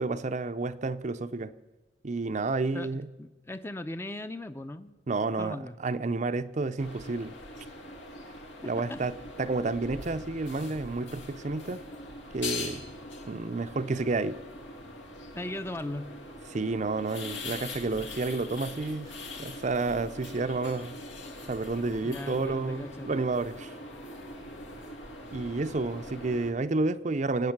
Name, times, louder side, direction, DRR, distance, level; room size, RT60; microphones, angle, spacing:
voice 1, 0.0-1.5 2.0-3.1 5.1-7.4 8.6-11.8 12.3-12.9 13.3-14.4 16.5-19.1 19.4-21.0 21.5-23.7 25.3-27.5, right 3 dB, 40° right, 0.5 m, -30 dB
voice 2, 2.7-5.0 5.4-5.7 8.6-9.1 15.3-16.1 22.0-23.1, left 1 dB, 15° left, 0.5 m, -38 dB
sound 1, 6.8-26.5, left 2 dB, 85° left, 2.1 m, -42 dB
25.0 x 8.8 x 5.9 m
head